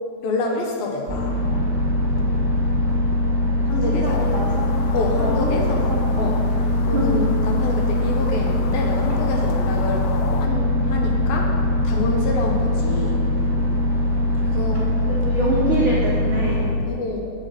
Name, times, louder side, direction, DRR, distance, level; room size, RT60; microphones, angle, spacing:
voice 1, 0.2-1.4 3.7-4.2 4.9-5.9 6.1-6.4 6.8-11.6 11.8-13.2 14.3-14.9 16.8-17.2, left 3 dB, 70° left, 1 dB, 2.8 m, -27 dB
sound 1, 1.1-16.6, left 1 dB, 35° left, 1.2 m, -21 dB
voice 2, 3.8-4.7 5.2-6.3 6.9-7.1 15.1-16.8, right 1 dB, 90° right, -5 dB, 1.1 m, -25 dB
sound 2, 4.1-10.5, left 7 dB, 90° left, 1.9 m, -37 dB
9.2 x 8.0 x 5.8 m, 2.2 s
omnidirectional pair, 4.5 m